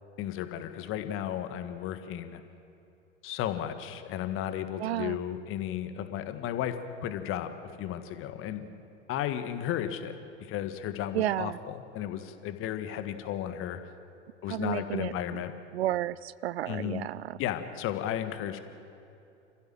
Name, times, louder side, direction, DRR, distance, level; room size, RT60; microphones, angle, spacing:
voice 1, 0.2-2.4 3.2-8.8 9.1-13.8 14.4-15.5 16.7-17.0 17.4-18.6, left 10 dB, 35° left, 9 dB, 1.6 m, -34 dB
voice 2, 4.8-5.2 11.1-11.6 14.5-15.4 15.7-17.4, right 13 dB, 60° right, 21 dB, 0.5 m, -32 dB
29.0 x 15.0 x 7.8 m, 2.8 s
figure-of-eight pair, 85°, 35 cm